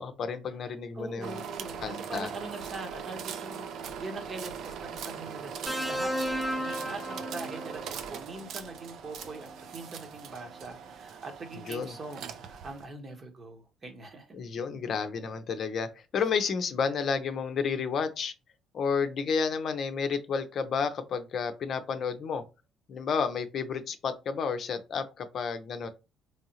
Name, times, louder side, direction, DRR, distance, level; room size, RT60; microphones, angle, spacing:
voice 1, 0.0-1.4 1.8-2.3 11.5-11.9 14.3-18.3 18.7-22.4 22.9-25.9, left 6 dB, 55° left, 0.6 m, -31 dB
voice 2, 0.9-14.4, right 2 dB, 45° right, 1.0 m, -43 dB
sound 1, 1.2-12.8, right 7 dB, 65° right, 0.4 m, -40 dB
sound 2, 5.7-7.9 9.2-9.5, equal, 15° right, 0.8 m, -33 dB
3.6 x 3.2 x 2.8 m
hypercardioid pair, 50°, 0 cm